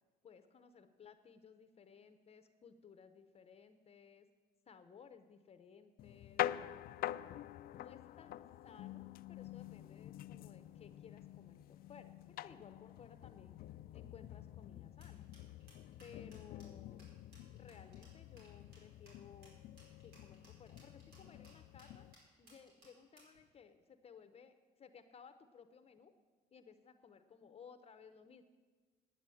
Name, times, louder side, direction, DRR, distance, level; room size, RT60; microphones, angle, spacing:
voice 1, 0.2-4.3 4.7-6.5 7.7-15.3 15.7-17.1 17.5-19.6 20.0-22.1 22.4-26.1 26.5-28.4, left 6 dB, 35° left, 10 dB, 0.7 m, -59 dB
sound 1, 6.0-22.1, left 13 dB, 60° left, 0.4 m, -47 dB
sound 2, 15.0-23.4, right 1 dB, 75° right, 4.9 m, -65 dB
9.8 x 9.2 x 7.6 m, 1.3 s
cardioid pair, 110°, 17 cm